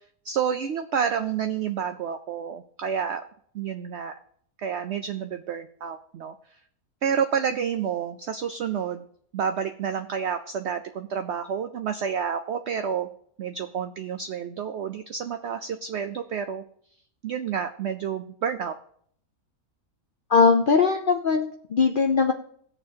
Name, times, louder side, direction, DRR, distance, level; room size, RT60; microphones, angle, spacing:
voice 1, 0.2-3.2 3.5-4.1 4.6-6.3 7.0-9.0 9.3-13.1 13.4-16.6 17.2-18.7, right 7 dB, 60° right, 7 dB, 0.7 m, -29 dB
voice 2, 20.3-22.3, left 5 dB, 55° left, 4 dB, 0.6 m, -20 dB
18.5 x 7.0 x 2.8 m, 0.63 s
omnidirectional pair, 1.5 m